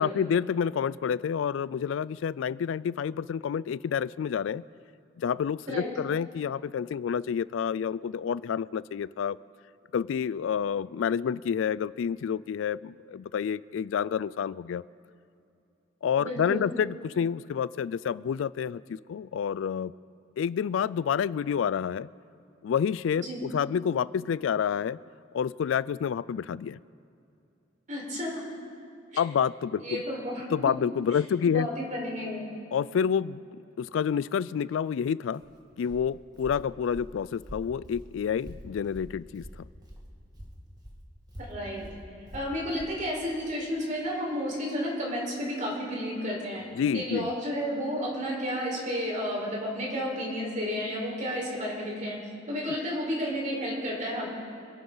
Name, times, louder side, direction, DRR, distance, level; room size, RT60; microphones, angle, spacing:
voice 1, 0.0-4.6 5.2-9.4 9.9-14.8 16.0-19.9 20.4-22.1 22.6-25.0 25.3-26.8 29.2-30.0 30.5-31.7 32.7-35.4 35.8-39.7 46.7-47.3, left 7 dB, 80° left, 19 dB, 0.3 m, -29 dB
voice 2, 16.2-16.6 23.2-23.4 27.9-28.4 29.1-29.2 29.8-30.4 31.4-32.4 41.4-41.8 42.3-46.6 46.9-52.2 52.5-54.3, equal, 40° right, -3 dB, 4.5 m, -32 dB
Walk footsteps, 35.3-40.1 40.3-43.0, equal, 20° right, 1.7 m, -45 dB
27.0 x 11.5 x 4.0 m, 2.7 s
head